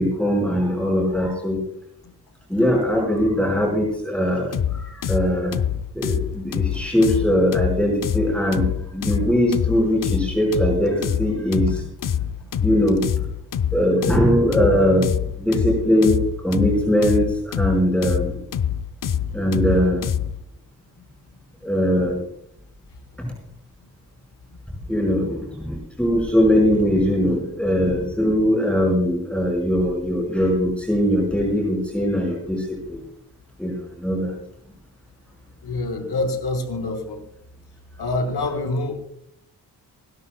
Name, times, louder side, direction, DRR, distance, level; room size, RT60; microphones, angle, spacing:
voice 1, 0.0-1.6 2.5-5.6 5.9-11.9 12.6-13.1 13.7-15.1 15.4-18.4 19.3-20.0 21.6-22.2 23.2-23.3 24.9-33.0 33.6-34.4, equal, 5° left, -1 dB, 5.1 m, -21 dB
sound 1, 4.5-20.4, left 9 dB, 55° left, 0.8 m, -25 dB
voice 2, 35.6-37.2 38.0-39.0, left 2 dB, 80° left, 4 dB, 4.0 m, -26 dB
28.0 x 12.5 x 2.3 m, 0.70 s
cardioid pair, 80°, 40 cm